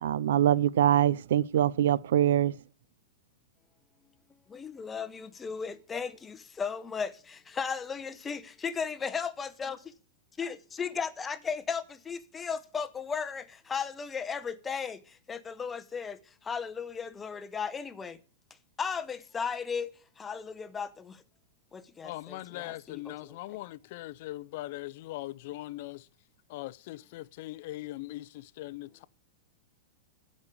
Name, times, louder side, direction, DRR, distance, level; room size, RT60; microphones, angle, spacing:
voice 1, 0.0-2.5, right 11 dB, 80° right, 0.6 m, -24 dB
voice 2, 4.5-9.8 10.4-18.2 18.8-21.2 21.7-23.6, left 6 dB, 15° left, 0.9 m, -36 dB
voice 3, 22.0-26.1 26.5-29.0, left 17 dB, 55° left, 0.5 m, -40 dB
15.0 x 5.4 x 8.4 m
supercardioid pair, 155°, 0 cm